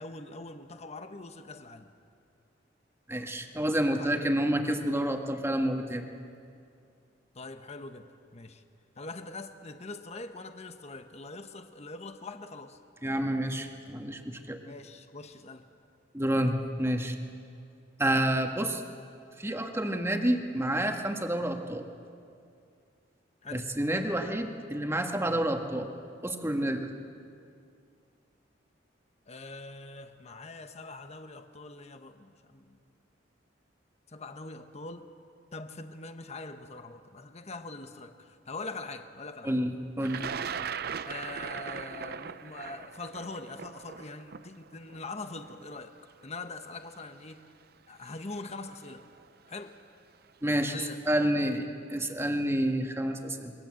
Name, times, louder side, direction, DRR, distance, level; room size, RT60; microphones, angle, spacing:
voice 1, 0.0-1.9 3.8-4.3 7.3-8.6 9.0-12.8 14.6-15.7 23.4-23.7 29.3-32.8 34.1-35.1 35.5-39.6 41.0-46.0 46.2-47.4 47.9-49.0 49.5-49.8 50.6-51.0, left 3 dB, 35° left, 8 dB, 1.2 m, -43 dB
voice 2, 3.1-6.1 13.0-14.6 16.1-17.2 18.0-18.8 19.4-21.9 23.5-25.9 26.2-26.9 39.4-40.2 50.4-50.8 51.1-53.5, right 1 dB, 15° right, 4 dB, 1.8 m, -29 dB
Thunder, 40.0-46.0 47.0-47.1 48.2-48.4 48.8-49.2, right 7 dB, 55° right, 0.6 m, -39 dB
27.5 x 23.0 x 7.7 m, 2.4 s
head